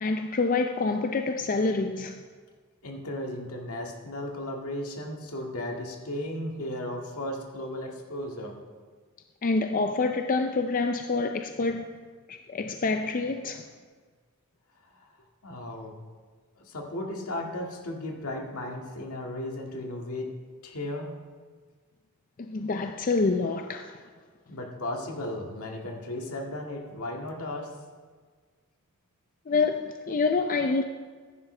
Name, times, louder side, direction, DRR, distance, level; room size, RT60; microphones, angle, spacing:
voice 1, 0.0-2.2 9.4-11.9 12.3-13.7 22.4-24.0 29.5-30.8, left 3 dB, 40° left, 0.4 m, -27 dB
voice 2, 2.8-8.6 15.0-15.1 15.4-16.0 16.6-20.3 20.6-21.1 24.5-27.7, left 1 dB, 75° left, 1.9 m, -35 dB
15.0 x 10.5 x 3.3 m
head